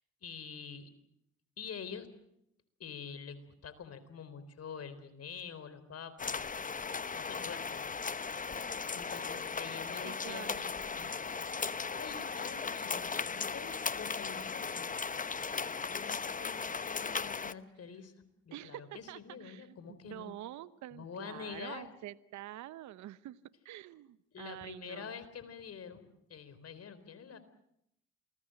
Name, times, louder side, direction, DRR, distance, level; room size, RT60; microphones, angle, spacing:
voice 1, 0.2-0.9 1.6-2.1 2.8-6.5 7.2-7.9 8.9-11.2 11.9-15.1 15.9-18.1 18.5-20.3 20.9-21.9 24.3-27.4, left 6 dB, 50° left, 12 dB, 4.0 m, -46 dB
sound 1, 6.2-17.5, left 5 dB, 25° left, 1.0 m, -37 dB
voice 2, 10.0-10.6 18.5-19.7 20.0-23.4 23.6-25.1, right 14 dB, 65° right, 16 dB, 0.9 m, -47 dB
28.0 x 20.5 x 7.8 m, 0.78 s
supercardioid pair, 65°, 31 cm